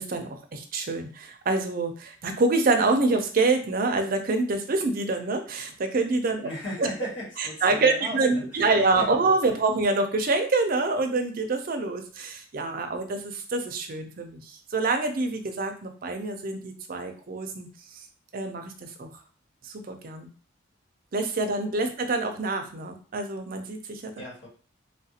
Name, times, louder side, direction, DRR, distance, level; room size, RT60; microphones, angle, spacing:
voice 1, 0.0-6.5 7.4-18.0 18.3-19.1 19.6-20.3 21.1-24.1, right 3 dB, 45° right, 5 dB, 0.5 m, -26 dB
voice 2, 6.4-8.7 8.9-9.2 9.4-9.5 24.2-24.5, equal, 65° left, -4 dB, 1.6 m, -37 dB
3.4 x 2.4 x 2.7 m, 0.39 s
head